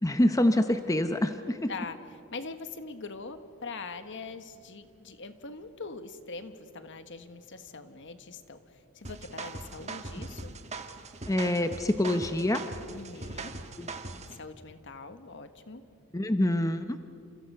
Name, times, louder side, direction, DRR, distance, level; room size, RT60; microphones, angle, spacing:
voice 1, 0.0-1.7 11.3-12.6 13.8-13.9 16.1-17.0, left 1 dB, 15° left, 8 dB, 0.7 m, -26 dB
voice 2, 1.7-10.5 12.9-13.5 14.0-15.8, left 4 dB, 55° left, 9 dB, 1.4 m, -43 dB
sound 1, 9.0-14.4, right 3 dB, 30° right, 1.4 m, -41 dB
29.5 x 28.5 x 5.6 m, 2.5 s
head